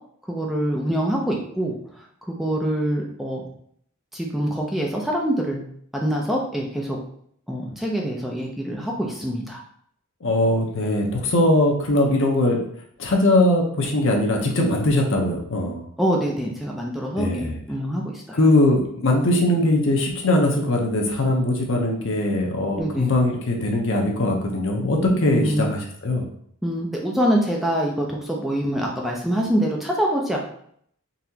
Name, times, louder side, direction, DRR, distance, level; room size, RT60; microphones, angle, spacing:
voice 1, 0.3-1.7 2.3-3.4 4.1-5.6 5.9-7.0 7.5-9.6 16.0-18.4 22.8-23.1 25.3-25.6 26.6-30.4, equal, ahead, -2 dB, 0.4 m, -25 dB
voice 2, 10.2-12.6 13.0-15.9 17.2-17.6 18.3-26.3, left 1 dB, 60° left, 1 dB, 0.8 m, -21 dB
4.0 x 2.9 x 2.8 m, 0.66 s
head